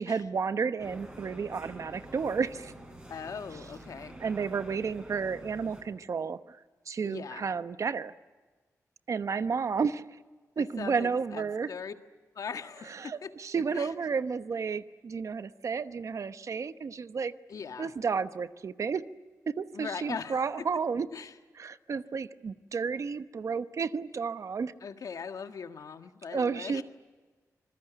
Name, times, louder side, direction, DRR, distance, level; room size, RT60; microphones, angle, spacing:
voice 1, 0.0-2.7 4.2-6.6 6.9-8.1 9.1-10.0 10.6-11.7 12.9-17.3 17.8-19.0 19.5-21.1 21.6-24.7 26.3-26.8, right 5 dB, 55° right, 12 dB, 0.9 m, -32 dB
sound 1, 0.8-5.8, right 1 dB, 20° right, 6.5 m, -47 dB
voice 2, 3.1-4.1 7.0-7.5 10.6-11.9 12.4-12.9 13.2-13.3 13.7-13.9 17.5-17.9 19.7-20.4 21.1-21.3 24.8-26.8, left 6 dB, 70° left, 8 dB, 1.7 m, -40 dB
26.5 x 21.5 x 10.0 m, 1.4 s
wide cardioid pair, 130°, 6 cm